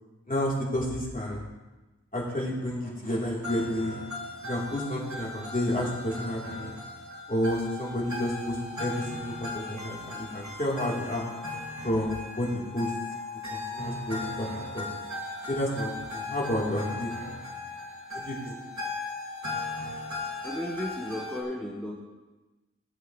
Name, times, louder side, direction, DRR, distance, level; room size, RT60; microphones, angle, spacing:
voice 1, 0.3-1.5 2.1-3.9 4.4-6.7 7.3-11.3 11.8-12.9 13.5-14.8 15.5-17.1 18.1-18.6, left 1 dB, 30° left, -5 dB, 3.4 m, -30 dB
sound 1, 3.4-21.4, left 2 dB, 70° right, 2.3 m, -37 dB
voice 2, 20.4-21.9, left 1 dB, 5° left, -2 dB, 1.4 m, -34 dB
17.0 x 8.1 x 3.2 m, 1.1 s
wide cardioid pair, 40°, 30 cm